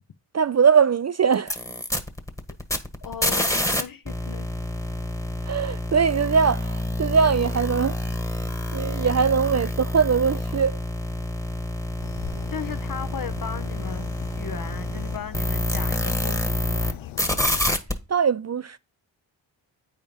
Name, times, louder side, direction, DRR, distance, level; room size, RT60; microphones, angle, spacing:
voice 1, 0.3-1.5 5.5-7.9 8.7-10.8 18.1-18.8, right 6 dB, 35° right, 0.5 m, -21 dB
sound 1, 1.3-3.8 4.1-16.9 17.2-17.9, left 1 dB, 5° left, 1.5 m, -27 dB
voice 2, 3.0-4.5 12.5-14.1 14.4-17.4, left 7 dB, 45° left, 0.9 m, -37 dB
sound 2, 12.0-17.8, left 13 dB, 75° left, 0.6 m, -40 dB
8.8 x 4.3 x 5.2 m
supercardioid pair, 45°, 48 cm